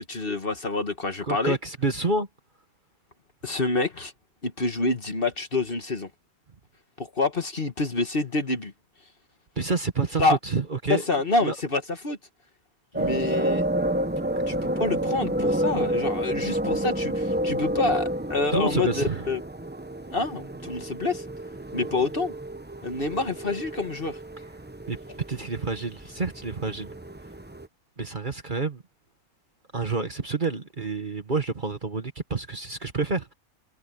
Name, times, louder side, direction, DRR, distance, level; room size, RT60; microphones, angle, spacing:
voice 1, 0.1-1.6 3.4-4.1 4.4-6.1 7.0-8.7 10.2-10.4 10.9-12.2 12.9-13.6 14.5-19.4 20.1-21.2 21.7-22.3 22.8-24.2, left 3 dB, 40° left, 1.8 m, -27 dB
voice 2, 1.2-2.3 9.6-11.0 11.4-11.5 18.5-19.2 24.9-25.0 25.3-26.9 28.0-28.8 29.7-33.3, right 3 dB, 35° right, 1.4 m, -28 dB
sound 1, 12.9-27.7, right 1 dB, 10° right, 0.7 m, -30 dB
omnidirectional pair, 1.6 m